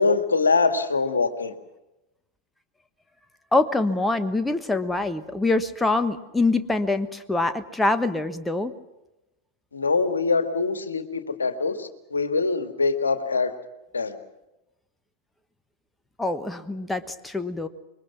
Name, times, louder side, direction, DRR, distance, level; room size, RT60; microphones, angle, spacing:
voice 1, 0.0-1.5 9.7-13.5 13.9-14.2, left 4 dB, 75° left, 9 dB, 1.9 m, -23 dB
voice 2, 3.5-8.7 16.2-17.7, left 2 dB, 10° left, 10 dB, 1.3 m, -24 dB
26.5 x 22.5 x 6.1 m, 0.98 s
figure-of-eight pair, 90°, 0 cm